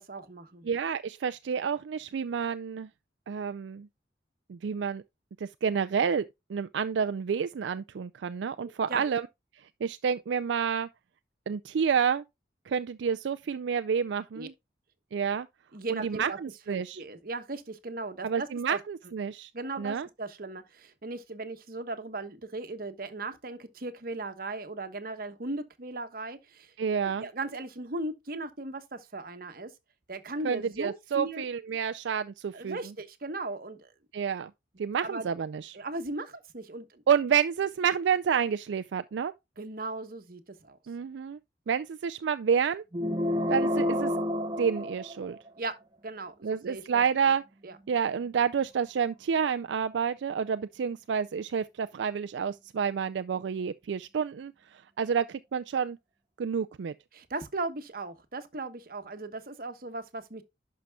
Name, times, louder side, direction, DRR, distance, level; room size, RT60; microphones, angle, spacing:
voice 1, 0.0-0.7 8.6-9.0 14.3-14.5 15.7-16.4 16.7-18.8 19.5-26.7 27.0-29.7 30.1-31.4 32.5-33.9 35.0-35.3 35.7-37.0 39.6-40.8 45.6-45.7 46.0-47.3 47.6-47.8 57.1-60.4, right 2 dB, 55° right, 1.1 m, -37 dB
voice 2, 0.7-2.9 3.3-3.9 4.5-5.0 5.4-6.2 6.5-9.2 9.8-10.9 11.5-12.2 12.7-14.5 15.1-15.5 15.9-17.0 18.2-19.5 19.8-20.1 26.8-27.2 30.4-32.8 34.1-34.5 34.8-35.8 37.1-39.3 40.9-41.4 41.7-42.8 43.5-44.1 44.6-45.4 46.4-47.4 47.9-56.0 56.4-56.9, right 7 dB, 80° right, 0.4 m, -29 dB
sound 1, 42.9-45.6, left 1 dB, 25° right, 0.8 m, -29 dB
11.0 x 5.7 x 2.3 m
head